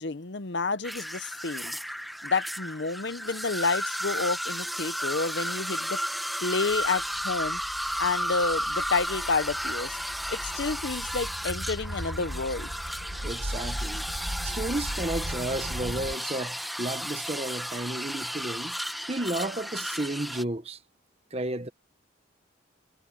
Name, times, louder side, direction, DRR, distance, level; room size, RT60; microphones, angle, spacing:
voice 1, 0.0-1.7 2.2-6.0 6.4-7.6 8.0-10.0 10.3-12.7, left 4 dB, 55° left, 0.8 m, -30 dB
sound 1, 0.8-20.4, equal, ahead, 1.1 m, -33 dB
sound 2, 6.7-16.2, equal, 60° right, 5.4 m, -38 dB
voice 2, 13.2-14.1 14.4-18.7 19.1-20.8 21.3-21.7, right 1 dB, 30° right, 1.1 m, -32 dB
head